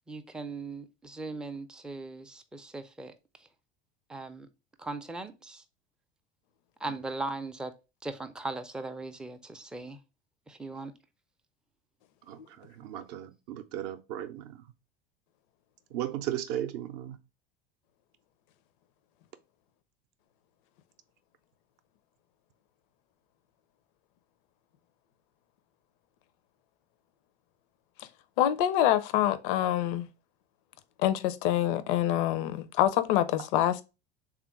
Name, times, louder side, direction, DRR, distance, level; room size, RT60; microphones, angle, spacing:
voice 1, 0.1-3.1 3.4-3.5 4.1-4.5 4.8-5.6 6.8-7.7 8.0-10.0 10.5-10.9, right 2 dB, 5° right, 0.3 m, -39 dB
voice 2, 12.2-14.7 15.9-17.2, right 11 dB, 50° right, 0.5 m, -36 dB
voice 3, 28.4-30.1 31.0-33.8, left 12 dB, 55° left, 0.5 m, -26 dB
3.4 x 2.4 x 4.4 m
figure-of-eight pair, 75°, 31 cm